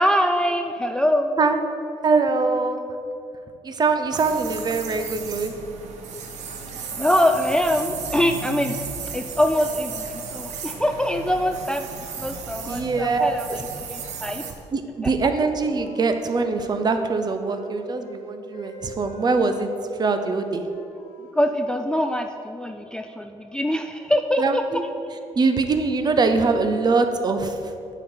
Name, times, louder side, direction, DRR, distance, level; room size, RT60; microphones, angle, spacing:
voice 1, 0.0-1.4 6.9-8.8 9.1-13.6 13.9-14.5 21.3-24.6, equal, 5° left, 6 dB, 0.3 m, -23 dB
voice 2, 2.0-2.8 3.6-5.5 12.6-13.6 14.7-20.7 24.4-24.8 25.4-27.7, right 4 dB, 35° right, 7 dB, 0.6 m, -23 dB
sound 1, 4.1-14.5, right 6 dB, 80° right, 0.8 m, -35 dB
Wind instrument woodwind instrument, 14.8-18.2 18.5-22.4, equal, 85° left, 1.1 m, -43 dB
8.0 x 5.0 x 4.4 m, 2.6 s
cardioid pair, 95°, 12 cm